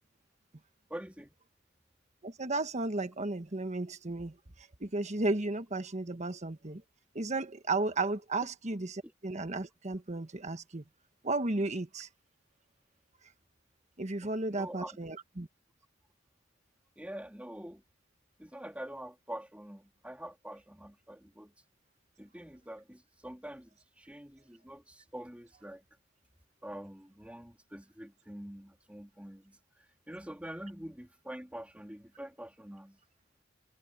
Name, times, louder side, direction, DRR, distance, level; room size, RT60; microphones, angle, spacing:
voice 1, 0.9-1.3 9.0-9.1 14.2-15.0 17.0-17.8 18.4-21.5 22.2-25.8 26.6-33.0, right 1 dB, 5° right, 2.9 m, -46 dB
voice 2, 2.2-4.3 4.8-6.8 7.1-10.8 11.2-12.1 14.0-15.5, right 2 dB, 35° right, 1.4 m, -34 dB
head